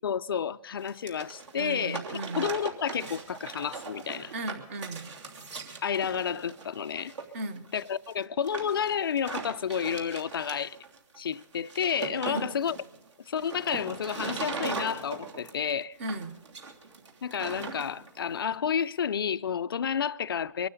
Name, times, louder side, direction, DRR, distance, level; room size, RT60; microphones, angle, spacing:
voice 1, 0.0-4.3 5.8-7.1 7.7-10.8 11.2-12.8 13.3-16.0 17.2-20.7, left 7 dB, 40° left, 0.5 m, -30 dB
sound 1, 0.8-18.2, right 4 dB, 50° right, 3.0 m, -39 dB
voice 2, 1.6-2.5 4.3-5.2 7.3-7.7 12.2-12.5 16.0-16.4, right 2 dB, 20° right, 0.9 m, -36 dB
25.0 x 12.5 x 4.0 m
hypercardioid pair, 165°, 19 cm